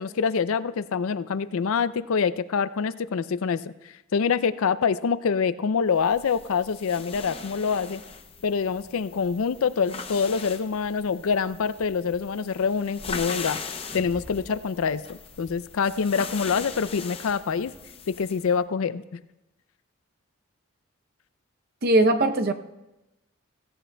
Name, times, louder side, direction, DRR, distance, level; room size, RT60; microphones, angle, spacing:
voice 1, 0.0-3.6 4.1-8.0 8.4-13.6 13.9-17.7 18.1-19.0, left 6 dB, 80° left, 15 dB, 0.4 m, -25 dB
sound 1, 6.0-18.5, left 5 dB, 25° left, 0.6 m, -40 dB
voice 2, 21.8-22.5, right 2 dB, 45° right, 7 dB, 0.6 m, -20 dB
17.0 x 16.0 x 2.2 m, 0.98 s
head